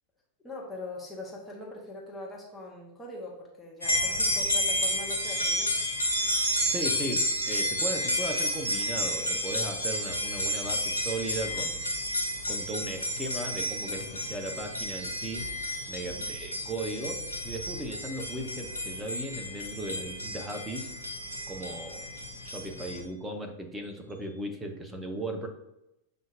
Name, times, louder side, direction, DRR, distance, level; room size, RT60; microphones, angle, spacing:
voice 1, 0.4-5.7 16.1-16.3, left 2 dB, 5° left, -4 dB, 1.0 m, -42 dB
sound 1, 3.8-23.0, left 1 dB, 80° left, 0.7 m, -32 dB
sound 2, 5.2-12.5 13.0-13.4 13.7-14.2 14.5-15.9 16.9-17.1 18.0-18.2 19.2-19.3 19.7-19.8 20.3-20.5, right 2 dB, 60° right, 0.8 m, -36 dB
voice 2, 6.7-11.8 12.5-15.5 15.9-20.9 21.5-22.1 22.4-25.5, right 1 dB, 10° right, 3 dB, 0.7 m, -37 dB
7.3 x 2.6 x 2.5 m, 0.87 s
figure-of-eight pair, 90°, 0 cm